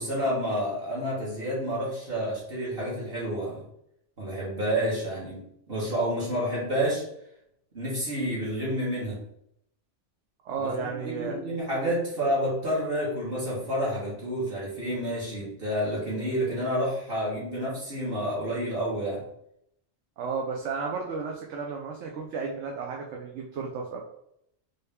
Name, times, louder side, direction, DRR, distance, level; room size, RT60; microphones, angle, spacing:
voice 1, 0.0-3.6 4.2-7.1 7.7-9.2 10.6-19.2, equal, 50° right, -7 dB, 1.6 m, -29 dB
voice 2, 10.4-11.4 20.2-24.0, right 5 dB, 75° right, 0 dB, 0.9 m, -33 dB
3.6 x 2.7 x 3.4 m, 0.76 s
omnidirectional pair, 1.2 m